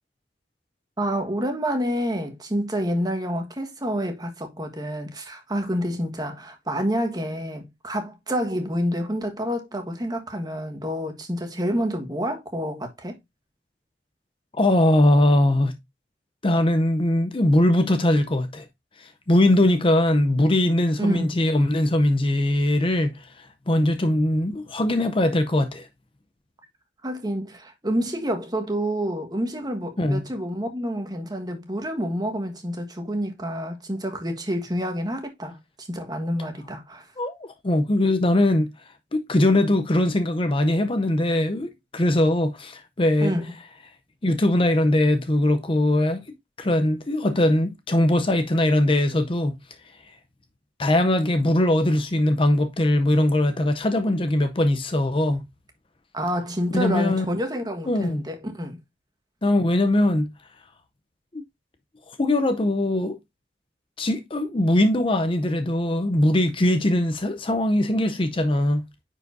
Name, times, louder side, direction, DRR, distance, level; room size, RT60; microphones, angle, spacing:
voice 1, 1.0-13.2 21.0-21.4 27.0-37.1 43.2-43.5 56.1-58.8, equal, 25° right, 1.4 m, -28 dB
voice 2, 14.6-15.8 16.4-18.7 19.0-25.9 30.0-30.3 37.2-38.7 39.1-43.3 44.2-46.2 46.6-49.5 50.8-55.4 56.7-57.3 57.9-58.2 59.4-60.3 61.3-61.4 62.2-63.2 64.0-68.8, left 1 dB, 30° left, 0.6 m, -21 dB
9.8 x 4.6 x 2.6 m
head